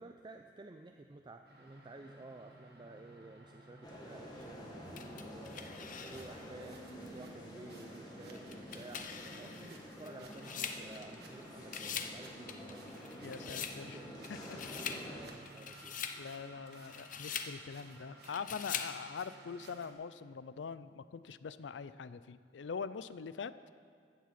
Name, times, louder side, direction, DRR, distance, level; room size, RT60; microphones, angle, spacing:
voice 1, 0.0-13.0 13.4-14.3 14.5-16.0, right 2 dB, 25° right, 4 dB, 0.4 m, -53 dB
sound 1, 1.4-19.9, right 2 dB, 60° right, 1.4 m, -57 dB
sound 2, 3.8-15.3, equal, 25° left, 1.7 m, -49 dB
sound 3, 5.0-6.5 7.1-7.2 8.3-11.3 11.6-12.2 12.5-13.8 14.2-15.0 15.5-16.2 16.7-17.5 18.2-18.9, left 7 dB, 45° left, 0.7 m, -43 dB
voice 2, 13.2-14.0 14.3-14.4 14.7-14.8 16.2-23.5, left 6 dB, 80° left, 15 dB, 0.4 m, -43 dB
15.0 x 7.5 x 5.9 m, 2.3 s
head